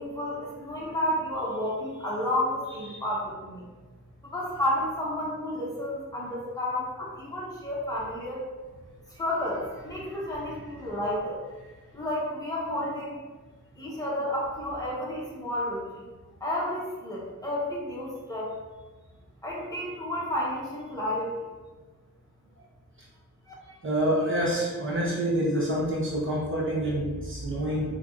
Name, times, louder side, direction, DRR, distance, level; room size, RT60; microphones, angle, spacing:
voice 1, 0.0-3.6 4.2-8.4 9.1-11.4 11.9-13.2 13.8-16.0 16.4-18.5 19.4-21.4 23.5-23.6, left 1 dB, 10° left, -6 dB, 1.1 m, -31 dB
voice 2, 23.8-27.9, right 1 dB, 40° right, -5 dB, 0.7 m, -27 dB
4.3 x 2.5 x 2.5 m, 1.3 s
wide cardioid pair, 90°, 32 cm